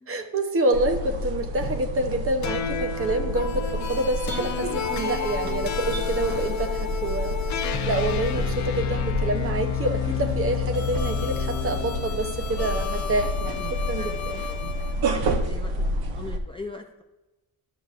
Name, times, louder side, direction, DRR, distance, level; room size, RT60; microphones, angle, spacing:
voice 1, 0.1-14.4, right 2 dB, 35° right, 6 dB, 0.9 m, -27 dB
sound 1, 0.7-16.4, equal, 70° right, 1.1 m, -30 dB
sound 2, 2.4-14.9, left 9 dB, 50° left, 0.7 m, -30 dB
voice 2, 14.0-17.0, left 3 dB, 15° left, 3 dB, 0.4 m, -42 dB
12.5 x 6.1 x 2.5 m, 1.1 s
cardioid pair, 120°, 37 cm